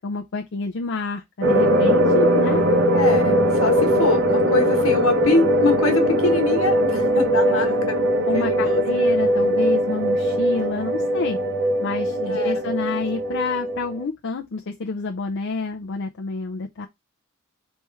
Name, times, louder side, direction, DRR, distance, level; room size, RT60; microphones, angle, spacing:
voice 1, 0.0-2.6 7.5-7.7 8.3-11.4 11.8-16.9, left 3 dB, 60° left, 0.5 m, -29 dB
sound 1, 1.4-14.0, equal, 60° right, 0.9 m, -20 dB
voice 2, 2.9-8.0 8.3-8.8 12.2-12.5, left 2 dB, 80° left, 1.4 m, -24 dB
3.3 x 3.1 x 4.7 m
head